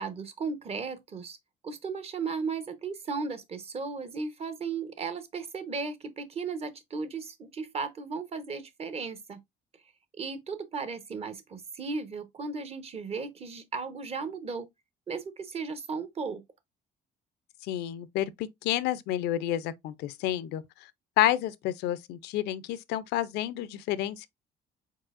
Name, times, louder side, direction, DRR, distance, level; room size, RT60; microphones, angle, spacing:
voice 1, 0.0-1.4 1.6-9.4 10.2-14.7 15.1-16.4, right 4 dB, 35° right, 0.9 m, -35 dB
voice 2, 17.6-20.6 21.2-24.3, left 13 dB, 80° left, 0.5 m, -29 dB
4.6 x 4.1 x 2.4 m
cardioid pair, 110°, 17 cm